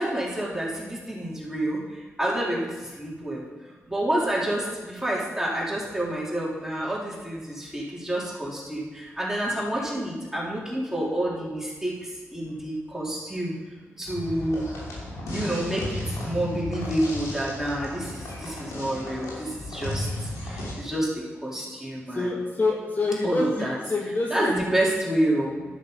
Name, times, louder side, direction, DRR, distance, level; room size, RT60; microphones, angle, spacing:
voice 1, 0.0-3.5 3.9-13.5 14.0-14.7 15.3-22.4 23.2-23.8 24.3-25.6, right 1 dB, 10° right, -5 dB, 3.6 m, -28 dB
sound 1, 14.0-20.7, left 1 dB, 90° left, 3.0 m, -34 dB
voice 2, 22.1-24.7, left 2 dB, 35° left, -1 dB, 1.7 m, -26 dB
11.5 x 6.6 x 5.4 m, 1.3 s
cardioid pair, 50°, 5 cm